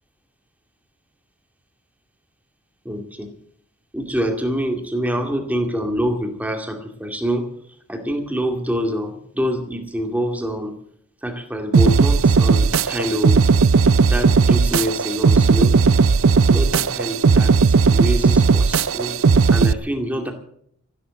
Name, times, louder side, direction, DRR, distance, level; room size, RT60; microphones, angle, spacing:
voice 1, 2.8-3.3 3.9-7.5 7.9-10.7 11.2-13.4 14.1-15.8 16.5-19.2 19.5-20.3, equal, 5° right, 4 dB, 2.2 m, -25 dB
sound 1, 11.7-19.7, right 4 dB, 65° right, 0.5 m, -16 dB
14.0 x 12.5 x 7.6 m, 0.67 s
head